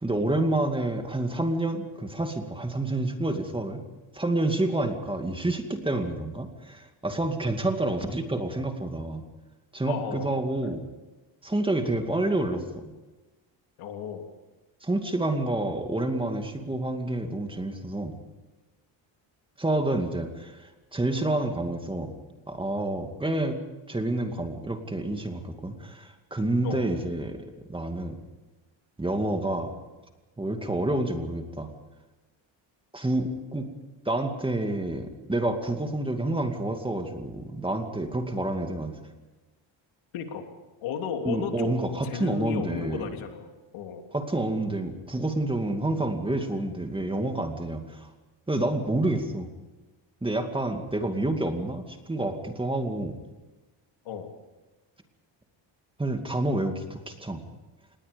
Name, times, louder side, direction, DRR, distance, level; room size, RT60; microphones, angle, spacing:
voice 1, 0.0-3.8 4.1-9.2 9.7-10.8 11.4-12.9 14.8-18.2 19.6-22.1 22.5-23.6 23.9-28.2 29.0-29.8 30.4-31.7 32.9-33.7 34.1-39.0 41.2-43.1 44.1-48.1 48.5-49.5 50.2-53.2 56.0-57.4, right 2 dB, 10° right, 5 dB, 2.3 m, -28 dB
voice 2, 9.9-10.5 13.8-14.3 26.6-26.9 40.1-40.5 40.8-44.0 54.0-54.3, left 7 dB, 85° left, 4 dB, 3.2 m, -34 dB
27.0 x 20.5 x 5.3 m, 1.2 s
cardioid pair, 145°, 48 cm